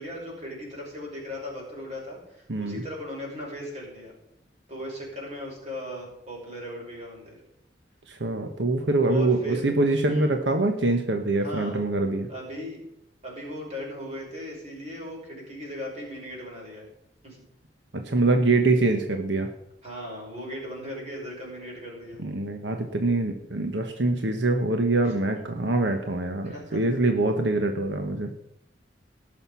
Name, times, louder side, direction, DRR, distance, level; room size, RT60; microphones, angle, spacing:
voice 1, 0.0-4.1 4.7-7.4 9.1-9.7 10.1-10.3 11.4-11.8 12.3-12.8 13.2-16.9 17.2-17.4 19.8-22.2 26.4-26.8, left 1 dB, 40° right, -3 dB, 6.1 m, -37 dB
voice 2, 2.5-2.8 8.1-12.3 17.9-19.5 22.2-28.3, right 2 dB, 85° right, 5 dB, 1.2 m, -24 dB
18.0 x 6.7 x 5.7 m, 0.82 s
head